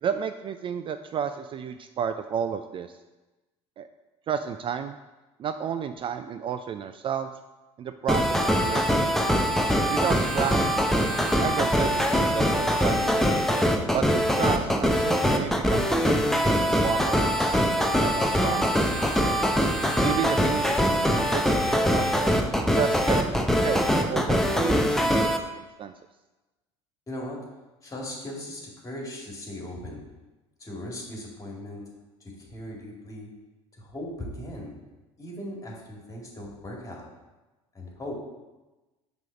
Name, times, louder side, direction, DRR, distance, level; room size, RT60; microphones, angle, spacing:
voice 1, 0.0-2.9 3.8-3.9 4.3-5.0 5.4-7.3 7.8-9.0 9.9-10.7 11.4-13.3 13.9-19.0 20.0-20.9 21.3-22.1 22.8-23.3 23.6-25.3 25.6-25.9, right 8 dB, 35° right, 9 dB, 0.3 m, -32 dB
sound 1, 8.1-25.4, equal, 5° left, 0.7 m, -23 dB
voice 2, 27.1-27.4 27.8-30.0 30.6-31.8 32.2-33.3 33.8-34.8 35.2-37.1 37.7-38.1, left 1 dB, 25° left, -2 dB, 2.3 m, -38 dB
6.0 x 3.5 x 5.6 m, 1.1 s
hypercardioid pair, 75°, 15 cm